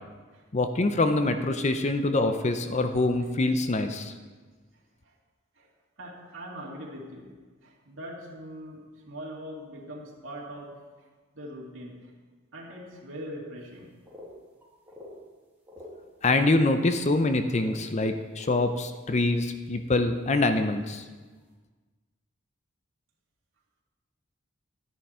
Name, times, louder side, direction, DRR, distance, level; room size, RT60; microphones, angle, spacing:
voice 1, 0.5-4.1 16.2-21.0, left 2 dB, 35° left, 8 dB, 0.6 m, -25 dB
voice 2, 6.0-7.3 7.6-10.8 11.3-12.1 12.5-13.9, equal, 80° right, -3 dB, 2.1 m, -41 dB
sound 1, 14.0-14.3 14.6-15.1 15.7-15.9 16.5-16.8 17.5-17.8 18.4-18.6 19.9-20.0 21.3-21.4, left 2 dB, 10° right, 2.3 m, -45 dB
12.0 x 10.0 x 4.4 m, 1.4 s
head